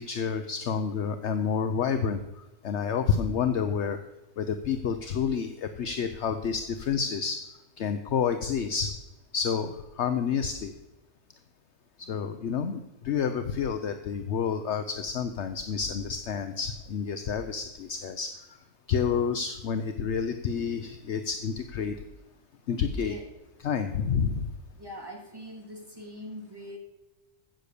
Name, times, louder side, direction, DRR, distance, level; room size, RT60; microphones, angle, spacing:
voice 1, 0.0-2.2 2.6-4.0 4.4-7.4 7.8-8.9 9.3-9.7 10.0-10.7 12.1-12.8 13.0-18.3 18.9-21.9 22.7-23.1 23.6-24.4, left 6 dB, 60° left, 8 dB, 1.0 m, -29 dB
voice 2, 22.9-23.3 24.7-26.8, equal, 15° right, 1 dB, 2.3 m, -42 dB
15.5 x 6.8 x 6.7 m, 1.0 s
omnidirectional pair, 1.4 m